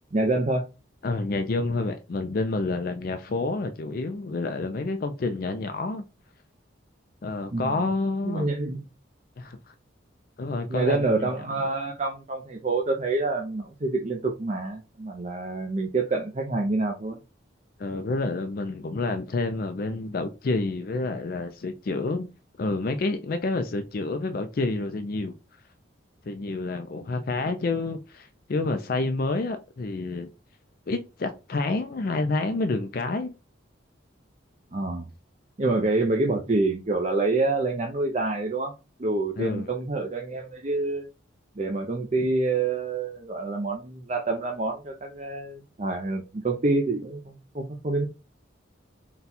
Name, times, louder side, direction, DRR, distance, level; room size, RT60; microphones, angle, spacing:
voice 1, 0.1-0.6 7.5-7.8 8.2-8.8 10.7-17.2 34.7-35.1 35.6-38.7 39.0-41.1 41.6-48.1, right 3 dB, 35° right, 0.5 m, -27 dB
voice 2, 1.0-6.0 7.2-8.5 9.4-9.6 10.4-11.3 17.8-22.3 22.6-25.3 26.3-30.3 30.9-33.3 39.4-39.7, left 3 dB, 45° left, 0.4 m, -28 dB
4.0 x 2.3 x 4.1 m
head